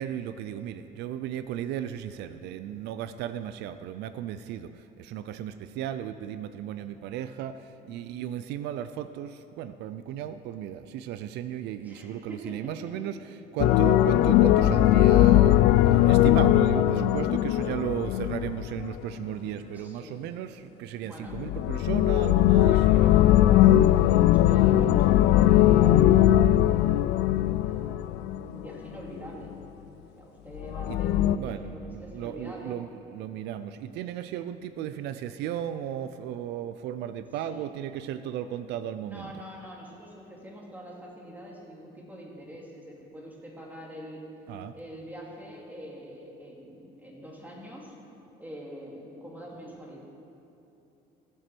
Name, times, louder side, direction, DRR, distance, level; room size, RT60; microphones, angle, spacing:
voice 1, 0.0-22.8 30.9-31.0 31.3-39.3 44.5-44.8, right 10 dB, 85° right, 12 dB, 0.5 m, -35 dB
voice 2, 11.8-12.6 19.7-20.1 21.0-21.3 22.5-28.1 28.4-29.5 30.2-32.7 37.5-37.7 39.0-44.2 44.7-48.0 48.4-50.0, equal, 10° right, -3 dB, 3.0 m, -44 dB
sound 1, 13.6-19.0 21.3-28.7 30.6-31.4, left 13 dB, 85° left, 0.4 m, -20 dB
17.5 x 7.7 x 6.1 m, 2.8 s
cardioid pair, 110°, 17 cm